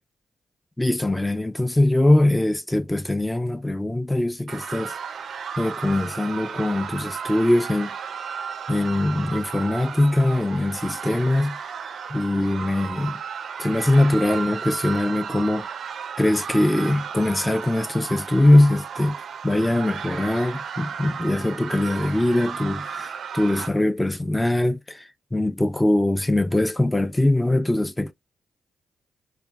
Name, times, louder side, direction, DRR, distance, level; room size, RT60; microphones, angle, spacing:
voice 1, 0.8-5.0 5.6-7.9 8.7-11.6 12.1-13.2 13.6-15.7 16.2-19.2 19.4-28.1, left 1 dB, 15° left, 0.5 m, -22 dB
sound 1, 4.5-23.7, right 7 dB, 70° right, 0.4 m, -34 dB
3.3 x 2.6 x 2.2 m
supercardioid pair, 45°, 0 cm